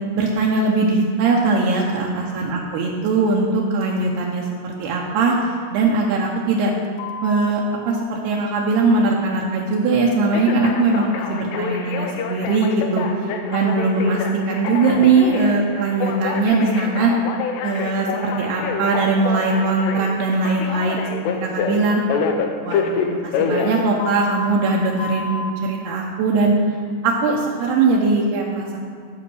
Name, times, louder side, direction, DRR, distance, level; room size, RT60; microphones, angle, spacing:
voice 1, 0.2-5.3 5.7-6.7 7.2-7.6 7.9-13.1 13.5-17.1 17.6-21.0 21.4-22.0 22.6-26.5 27.0-28.8, right 3 dB, 80° right, -2 dB, 2.8 m, -20 dB
Telephone, 7.0-7.5 10.3-24.5 25.0-25.5, left 5 dB, 90° left, 2.9 m, -27 dB
14.0 x 5.1 x 6.2 m, 2.2 s
omnidirectional pair, 4.9 m